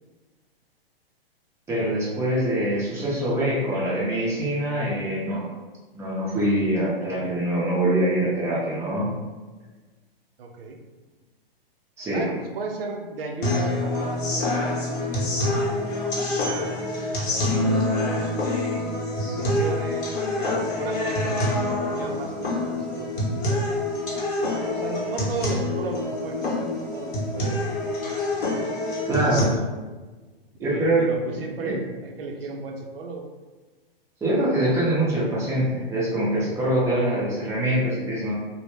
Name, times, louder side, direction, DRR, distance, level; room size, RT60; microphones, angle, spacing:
voice 1, 1.7-5.5 5.9-9.1 12.0-12.3 29.1-29.5 30.6-31.0 31.6-31.7 34.2-38.3, right 1 dB, 10° right, -7 dB, 0.6 m, -24 dB
voice 2, 10.4-10.8 12.1-15.6 16.3-16.8 17.1-18.4 19.2-21.4 21.7-23.6 24.6-28.2 28.4-28.8 29.2-29.7 30.6-33.3, right 3 dB, 70° right, 2 dB, 0.6 m, -35 dB
sound 1, 13.4-29.4, left 1 dB, 55° left, 0.9 m, -26 dB
2.0 x 2.0 x 3.1 m, 1.3 s
hypercardioid pair, 125°, 30 cm